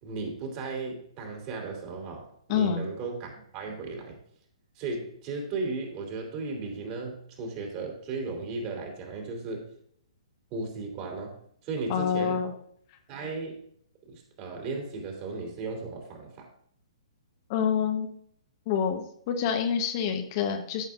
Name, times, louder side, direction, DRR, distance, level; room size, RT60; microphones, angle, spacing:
voice 1, 0.0-4.2 4.7-9.7 10.5-11.4 11.6-12.4 13.1-13.6 14.0-16.5, right 3 dB, 35° right, 1 dB, 3.0 m, -35 dB
voice 2, 2.5-2.8 11.9-12.5 17.5-18.1 18.7-20.9, left 7 dB, 35° left, 4 dB, 1.0 m, -27 dB
13.5 x 7.0 x 2.5 m, 0.65 s
figure-of-eight pair, 120°, 3 cm